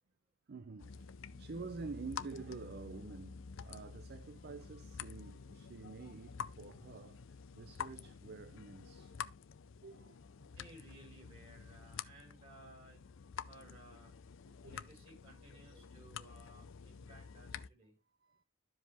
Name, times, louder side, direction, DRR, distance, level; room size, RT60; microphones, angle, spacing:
voice 1, 0.5-9.2 9.8-10.3 13.7-13.8 14.5-14.8 15.5-15.8 18.2-18.4, right 4 dB, 50° right, 0.5 m, -49 dB
sound 1, 0.8-17.7, left 7 dB, 65° left, 0.5 m, -49 dB
voice 2, 10.4-13.0 13.4-14.1 14.6-17.9, right 1 dB, 30° right, 4.5 m, -59 dB
12.5 x 5.0 x 3.4 m
head